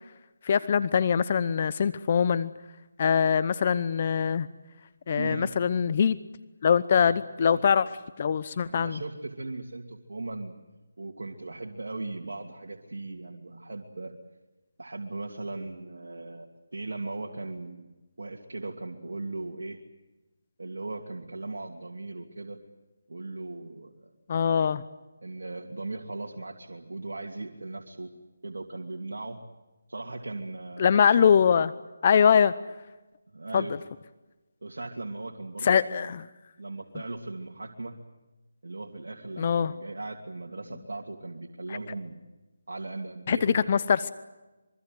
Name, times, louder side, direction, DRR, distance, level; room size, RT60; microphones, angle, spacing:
voice 1, 0.4-2.5 3.0-4.5 5.1-6.2 6.6-7.9 8.2-9.0 24.3-24.8 30.8-31.7 32.0-32.5 33.5-33.6 35.6-36.3 39.4-39.7 43.3-44.1, left 7 dB, 40° left, 15 dB, 0.8 m, -23 dB
voice 2, 5.2-5.5 7.0-7.1 7.5-7.6 8.7-10.5 11.0-14.1 14.8-16.5 16.7-17.9 18.2-19.8 20.6-22.6 23.1-24.1 25.2-28.1 28.4-29.4 29.9-31.3 33.3-33.8 34.6-36.1 36.6-38.0 38.6-42.2 42.7-43.9, right 2 dB, 75° right, 0 dB, 2.7 m, -38 dB
25.5 x 23.5 x 7.9 m, 1.1 s
figure-of-eight pair, 160°, 0 cm